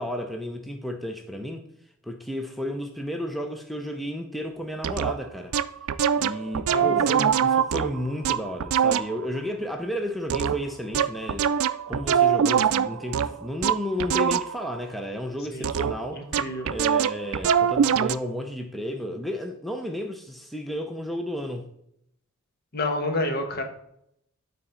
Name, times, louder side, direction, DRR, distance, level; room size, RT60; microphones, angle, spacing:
voice 1, 0.0-1.6 2.0-5.5 6.2-11.5 11.9-16.2 16.6-21.7, equal, ahead, 0.6 m, -32 dB
sound 1, 4.8-5.1 5.5-9.2 10.3-14.7 15.6-16.1 16.3-18.2, right 8 dB, 80° right, 0.4 m, -23 dB
voice 2, 6.7-7.1 15.5-15.7 16.1-16.8 22.7-23.6, left 2 dB, 50° left, 1.2 m, -29 dB
9.0 x 4.0 x 4.3 m
head